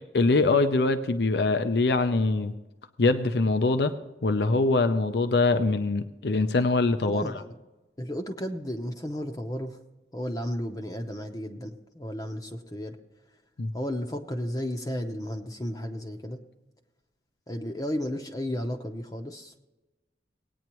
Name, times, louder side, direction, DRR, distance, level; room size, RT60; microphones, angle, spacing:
voice 1, 0.1-2.5 3.0-3.9 4.2-7.3 13.6-13.7, left 3 dB, 65° left, 9 dB, 0.6 m, -23 dB
voice 2, 7.0-7.5 8.0-9.8 10.1-13.0 13.7-16.4 17.5-19.5, equal, 20° left, 3 dB, 0.7 m, -33 dB
18.5 x 9.3 x 3.0 m, 1.1 s
head